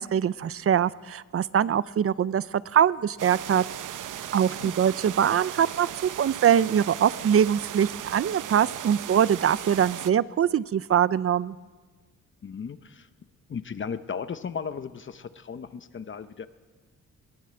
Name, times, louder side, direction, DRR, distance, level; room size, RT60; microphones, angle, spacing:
voice 1, 0.0-2.4 2.7-3.6 4.3-11.6, right 9 dB, 45° right, 18 dB, 0.5 m, -23 dB
sound 1, 3.2-10.1, right 11 dB, 75° right, 0.8 m, -37 dB
voice 2, 4.2-4.7 12.4-13.1 13.5-16.5, left 6 dB, 40° left, 12 dB, 0.8 m, -36 dB
21.0 x 18.5 x 7.8 m, 1.4 s
wide cardioid pair, 140°, 32 cm